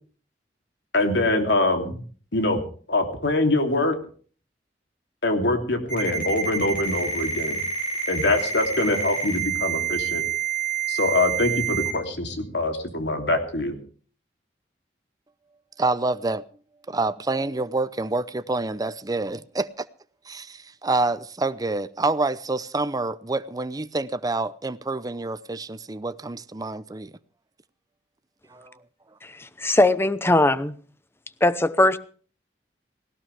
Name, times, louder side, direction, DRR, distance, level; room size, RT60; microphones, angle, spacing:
voice 1, 0.9-2.0 2.3-2.6 2.9-4.0 5.2-7.6 8.1-10.2 10.9-13.8, left 2 dB, 75° left, 3.0 m, -24 dB
Ringtone, 5.9-11.9, right 6 dB, 50° left, 6.2 m, -28 dB
voice 2, 15.8-16.4 16.9-19.8 20.3-27.1 28.5-28.7, right 3 dB, 20° right, 0.6 m, -27 dB
voice 3, 29.2-30.8 31.4-32.0, left 2 dB, 15° left, 0.8 m, -20 dB
18.0 x 17.0 x 3.4 m
head